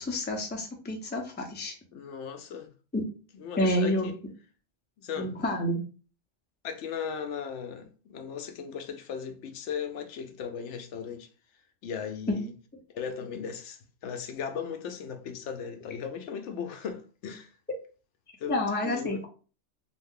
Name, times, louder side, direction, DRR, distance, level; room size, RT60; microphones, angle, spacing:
voice 1, 0.0-1.7 2.9-3.0 3.6-4.1 5.2-5.8 12.3-12.4 18.5-19.3, left 1 dB, 15° left, 0.4 m, -28 dB
voice 2, 1.9-2.7 3.4-4.1 5.0-5.3 6.6-11.3 11.8-12.5 12.9-17.5 18.4-19.2, left 7 dB, 75° left, 0.9 m, -37 dB
2.7 x 2.4 x 3.6 m
omnidirectional pair, 1.3 m